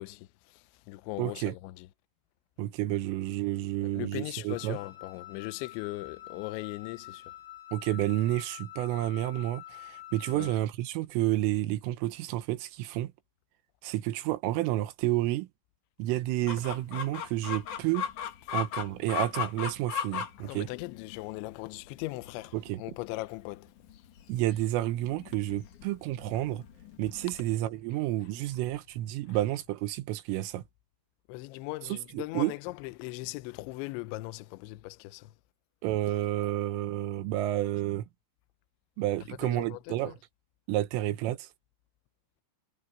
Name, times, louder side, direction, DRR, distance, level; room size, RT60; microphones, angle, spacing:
voice 1, 0.0-1.9 3.8-7.3 10.3-10.5 20.4-23.7 29.3-29.4 31.3-35.3 39.3-40.2, left 20 dB, 80° left, 2.8 m, -39 dB
voice 2, 1.2-1.6 2.6-4.8 7.7-13.1 13.8-15.5 16.0-18.1 18.5-20.7 22.5-22.8 24.3-26.6 27.0-30.6 32.1-32.5 35.8-38.1 39.0-40.1 40.7-41.5, right 15 dB, 80° right, 3.6 m, -30 dB
Wind instrument woodwind instrument, 4.5-10.7, left 14 dB, 30° left, 4.4 m, -47 dB
Chicken rooster, 16.5-27.6, left 8 dB, 60° left, 2.2 m, -38 dB
omnidirectional pair, 6.0 m